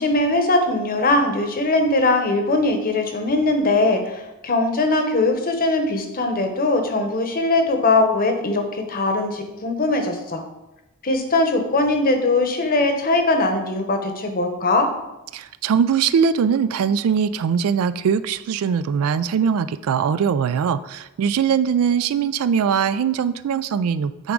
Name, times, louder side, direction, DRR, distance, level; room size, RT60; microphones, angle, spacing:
voice 1, 0.0-10.4 11.0-14.9, left 2 dB, 40° left, 5 dB, 0.9 m, -20 dB
voice 2, 15.3-24.3, right 7 dB, 70° right, 14 dB, 0.3 m, -21 dB
9.1 x 3.6 x 3.8 m, 0.96 s
head